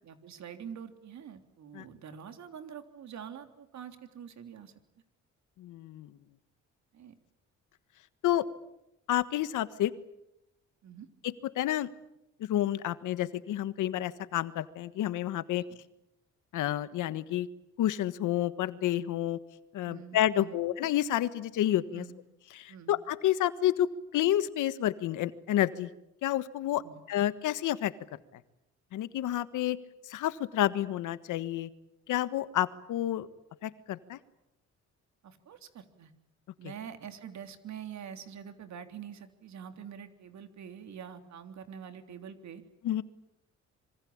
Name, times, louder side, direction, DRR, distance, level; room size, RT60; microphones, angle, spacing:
voice 1, 0.0-4.7 6.9-7.2 10.8-11.1 15.7-15.8 19.8-20.6 21.9-22.2 22.7-23.0 26.8-27.0 35.2-36.1 36.6-42.6, right 8 dB, 65° right, 8 dB, 3.4 m, -45 dB
voice 2, 5.6-6.1 8.2-8.4 9.1-9.9 11.2-11.9 12.4-15.6 16.5-17.5 17.8-19.4 19.7-22.0 22.5-25.9 26.2-26.8 27.1-27.9 28.9-29.8 30.1-31.7 32.1-33.3 33.6-34.2 42.8-43.0, left 12 dB, 85° left, 14 dB, 1.5 m, -29 dB
26.5 x 24.0 x 8.8 m, 0.88 s
cardioid pair, 90°, 30 cm